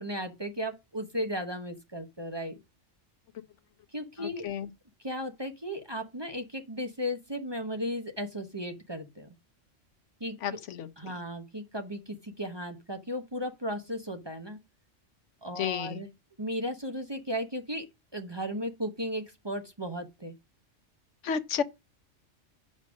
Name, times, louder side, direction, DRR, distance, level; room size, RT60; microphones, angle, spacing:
voice 1, 0.0-2.5 3.9-4.4 5.0-9.3 10.2-10.4 11.0-14.6 15.4-16.1 16.4-17.8 18.1-20.3, equal, 25° right, 0.9 m, -35 dB
voice 2, 4.2-4.7 10.4-11.1 15.6-16.0 21.2-21.6, left 8 dB, 75° left, 1.0 m, -32 dB
6.2 x 5.3 x 6.2 m
omnidirectional pair, 1.3 m